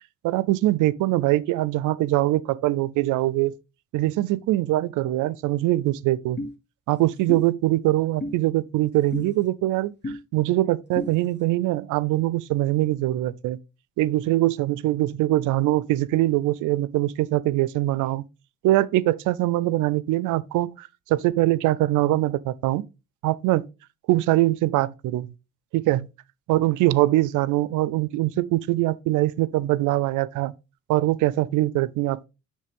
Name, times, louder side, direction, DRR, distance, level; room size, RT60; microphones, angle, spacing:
voice 1, 0.2-3.5 3.9-6.4 6.9-9.9 10.3-13.6 14.0-18.2 18.6-22.8 23.2-23.6 24.1-25.3 25.7-26.1 26.5-30.5 30.9-32.3, right 16 dB, 90° right, 0.5 m, -23 dB
sound 1, 6.4-6.5 7.3-7.4 8.2-8.3 9.1-9.3 10.0-10.2 10.9-11.1, left 1 dB, 35° left, 1.3 m, -31 dB
9.3 x 3.2 x 3.6 m
cardioid pair, 90°, 30 cm